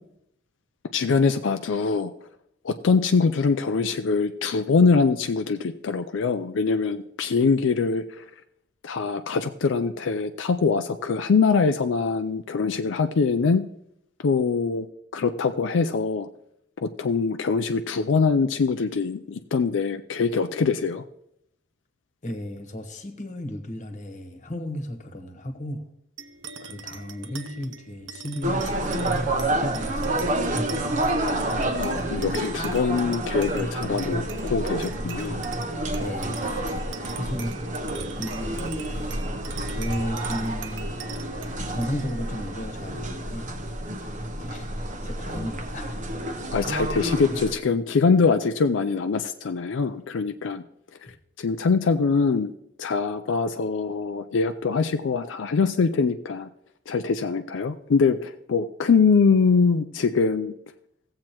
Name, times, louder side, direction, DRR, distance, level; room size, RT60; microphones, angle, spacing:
voice 1, 0.9-2.1 2.6-8.2 8.8-13.6 14.2-14.9 15.1-16.3 16.8-21.0 31.8-35.4 46.5-50.6 51.4-52.5 52.8-56.5 56.9-60.5, left 5 dB, 90° left, 0.4 m, -23 dB
voice 2, 22.2-25.9 26.6-31.1 36.0-37.6 38.2-39.1 39.7-41.0 41.7-43.6 44.3-44.7 45.0-45.9 46.6-46.7, equal, 40° left, 1.2 m, -35 dB
sound 1, 26.2-45.0, right 4 dB, 75° right, 0.6 m, -42 dB
sound 2, 28.4-47.6, right 1 dB, 45° right, 0.8 m, -29 dB
16.5 x 7.6 x 3.0 m
head